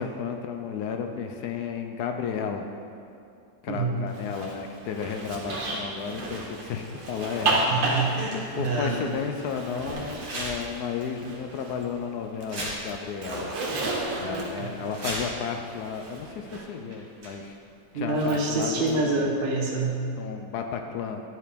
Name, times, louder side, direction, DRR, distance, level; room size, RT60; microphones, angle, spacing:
voice 1, 0.0-2.7 3.6-7.7 8.5-13.6 14.2-17.6 17.9-19.3 20.2-21.2, left 6 dB, 70° left, 5 dB, 1.0 m, -33 dB
voice 2, 3.7-4.0 7.7-9.0 14.2-14.5 17.9-20.0, right 3 dB, 40° right, -3 dB, 0.9 m, -26 dB
Zipper (clothing), 4.1-11.9 12.2-16.7 18.1-18.9, right 2 dB, 80° right, 1.9 m, -33 dB
sound 1, 6.0-9.3 10.1-10.8 11.2-11.3 12.0-12.1 12.4-13.2 13.5-13.6 13.8-14.3 14.7-15.6 16.5-16.6 16.9-17.7 18.7-19.3, right 1 dB, 65° right, 2.6 m, -40 dB
9.8 x 4.8 x 5.1 m, 2.6 s
omnidirectional pair, 2.0 m